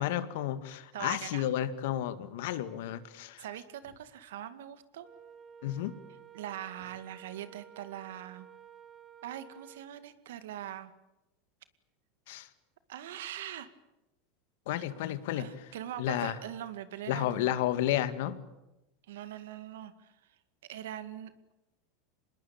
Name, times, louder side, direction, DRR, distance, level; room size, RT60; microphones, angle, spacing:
voice 1, 0.0-3.4 5.6-5.9 12.3-12.5 14.7-15.5 16.0-16.4 17.1-18.4, left 12 dB, 70° left, 12 dB, 2.0 m, -32 dB
voice 2, 0.9-1.5 3.4-5.1 6.3-8.5 9.2-10.9 12.9-13.7 15.4-17.6 19.1-20.1 20.7-21.3, right 11 dB, 80° right, 12 dB, 2.1 m, -42 dB
Wind instrument woodwind instrument, 5.0-9.9, right 9 dB, 25° right, 3.1 m, -53 dB
26.0 x 20.5 x 8.9 m, 0.95 s
supercardioid pair, 120°, 0 cm